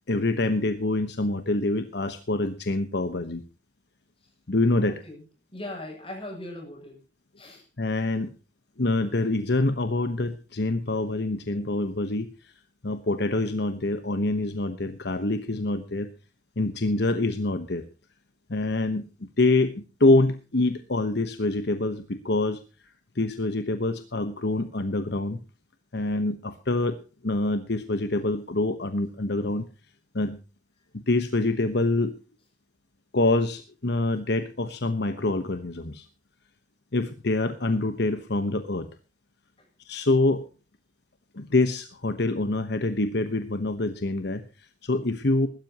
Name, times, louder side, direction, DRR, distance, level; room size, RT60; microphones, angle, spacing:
voice 1, 0.1-3.4 4.5-5.0 7.8-8.3 8.8-12.5 12.8-16.1 16.6-17.8 18.5-19.1 19.4-22.6 23.1-25.4 25.9-27.0 27.2-29.7 30.1-30.4 31.1-32.1 33.1-36.0 36.9-38.9 39.8-40.4 41.3-45.5, left 2 dB, 65° left, 9 dB, 1.1 m, -25 dB
voice 2, 5.5-7.0 7.4-7.7 11.5-12.0 39.6-39.7, left 1 dB, 30° left, 1 dB, 7.8 m, -40 dB
21.0 x 13.0 x 3.0 m, 0.32 s
head